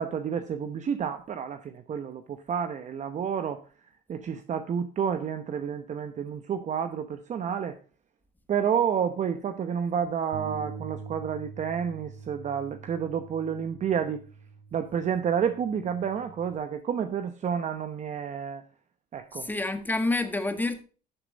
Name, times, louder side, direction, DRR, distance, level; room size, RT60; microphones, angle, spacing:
voice 1, 0.0-3.6 4.1-7.8 8.5-14.2 14.7-18.6 19.1-19.5, right 7 dB, 45° right, 1.0 m, -30 dB
Bass guitar, 10.3-16.6, right 5 dB, 80° right, 2.2 m, -44 dB
voice 2, 19.3-20.8, left 2 dB, 10° left, 1.6 m, -28 dB
12.0 x 6.7 x 4.0 m
cardioid pair, 110°, 17 cm